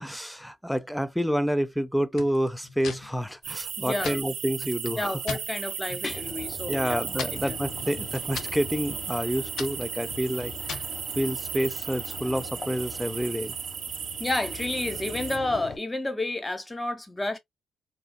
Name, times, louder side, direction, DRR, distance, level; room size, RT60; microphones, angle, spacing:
voice 1, 0.0-5.4 6.7-10.5 11.2-13.5, equal, ahead, 0.5 m, -28 dB
sound 1, 2.1-5.5 5.9-6.4 6.7-11.0, left 6 dB, 70° left, 0.8 m, -41 dB
sound 2, 3.4-15.4, right 7 dB, 65° right, 0.6 m, -36 dB
voice 2, 3.8-4.3 5.0-7.0 7.4-7.6 14.2-17.4, left 2 dB, 20° left, 0.9 m, -30 dB
sound 3, 6.1-15.8, left 4 dB, 40° left, 1.4 m, -43 dB
3.9 x 2.4 x 2.3 m
supercardioid pair, 65°, 0 cm